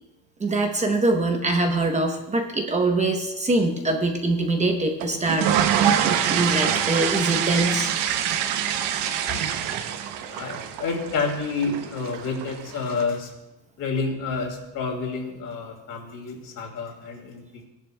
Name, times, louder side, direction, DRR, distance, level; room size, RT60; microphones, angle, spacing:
voice 1, 0.4-7.9, right 2 dB, 15° right, 3 dB, 0.8 m, -24 dB
sound 1, 5.0-13.0, right 9 dB, 80° right, 1.0 m, -25 dB
voice 2, 10.3-13.3 13.8-17.7, left 4 dB, 50° left, 1 dB, 2.5 m, -29 dB
18.0 x 11.0 x 2.2 m, 0.99 s
cardioid pair, 170°, 41 cm